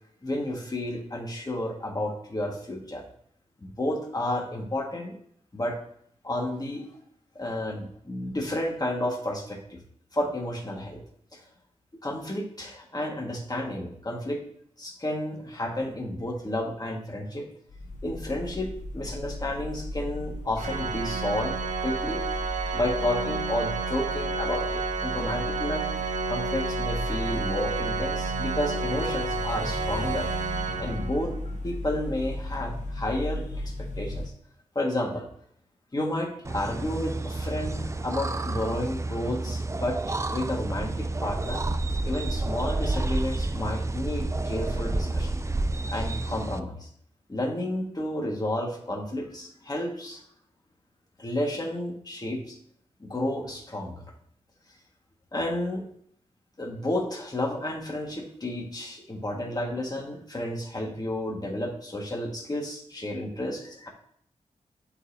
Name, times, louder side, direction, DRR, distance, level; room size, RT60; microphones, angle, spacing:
voice 1, 0.2-3.1 3.6-5.2 5.5-5.8 6.2-6.9 7.4-9.8 10.1-11.0 11.3-11.4 12.0-14.4 14.8-17.5 18.0-22.2 22.7-25.9 26.3-30.3 30.8-31.3 31.6-34.3 34.8-35.3 35.9-41.6 42.0-45.3 45.9-46.9 47.3-50.2 51.2-52.6 53.0-54.0 55.3-55.8 56.6-63.9, left 1 dB, 30° left, 0 dB, 1.9 m, -31 dB
sound 1, 17.7-34.3, left 1 dB, 75° left, 1.0 m, -35 dB
Organ, 20.6-31.4, right 5 dB, 80° right, 0.7 m, -31 dB
sound 2, 36.4-46.6, right 2 dB, 25° right, 0.5 m, -30 dB
11.0 x 4.3 x 2.9 m, 0.66 s
cardioid pair, 60°, 13 cm